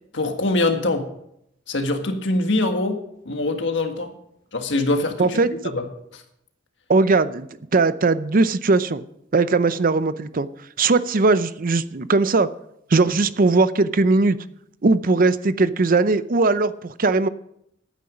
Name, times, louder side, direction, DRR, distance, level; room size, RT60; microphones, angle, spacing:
voice 1, 0.1-1.1 1.7-3.0 3.2-4.1 4.5-5.4 5.7-5.9 6.1-6.2, left 2 dB, 70° left, 5 dB, 1.7 m, -23 dB
voice 2, 5.2-5.5 6.9-7.5 7.7-9.0 9.3-10.5 10.8-12.5 12.9-14.4 14.8-17.3, right 3 dB, 45° right, 14 dB, 0.6 m, -19 dB
14.5 x 9.4 x 5.1 m, 0.76 s
head